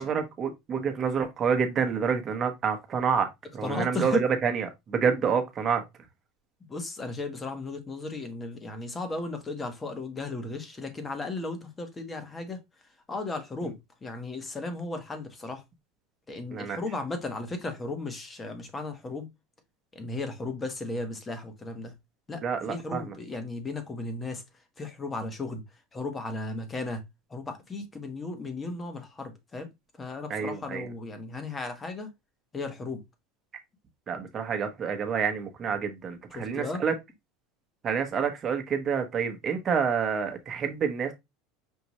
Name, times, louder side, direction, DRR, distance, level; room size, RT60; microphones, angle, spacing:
voice 1, 0.0-3.3 3.5-5.8 16.5-16.8 22.4-23.1 30.3-30.9 34.1-36.9 37.8-41.1, right 6 dB, 30° right, 1.0 m, -28 dB
voice 2, 3.6-4.2 5.0-5.3 6.7-12.6 13.1-15.6 16.3-19.3 19.9-21.9 22.3-22.4 22.7-24.4 24.8-25.6 25.9-27.0 27.3-29.7 30.0-32.1 32.5-33.0 36.3-36.8, left 3 dB, 20° left, 1.1 m, -35 dB
5.4 x 2.5 x 3.0 m
supercardioid pair, 125°, 0 cm